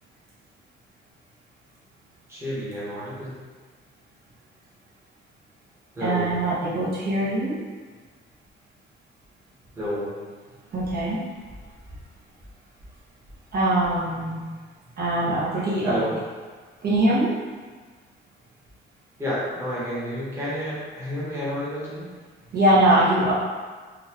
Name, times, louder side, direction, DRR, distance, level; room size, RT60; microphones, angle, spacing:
voice 1, 2.3-3.3 5.9-6.3 9.7-10.1 15.8-16.1 19.2-22.1, equal, 10° right, -9 dB, 1.0 m, -30 dB
voice 2, 6.0-7.6 10.7-11.2 13.5-14.4 15.0-16.0 16.8-17.4 22.5-23.3, right 1 dB, 50° right, -9 dB, 0.9 m, -22 dB
3.9 x 2.3 x 2.9 m, 1.4 s
cardioid pair, 140°, 20 cm